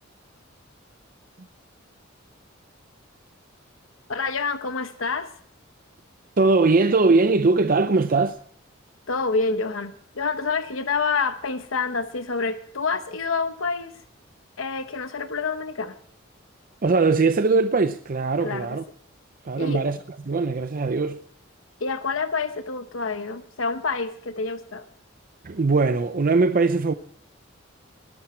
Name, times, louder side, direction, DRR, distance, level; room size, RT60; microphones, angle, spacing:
voice 1, 4.1-5.3 9.1-13.9 14.6-15.9 18.4-18.7 19.6-19.8 21.8-24.8, left 4 dB, 80° left, 1.0 m, -27 dB
voice 2, 6.4-8.4 16.8-18.8 19.4-20.0 20.3-21.2 25.4-26.9, right 3 dB, 45° right, 0.6 m, -20 dB
20.0 x 11.0 x 4.4 m
head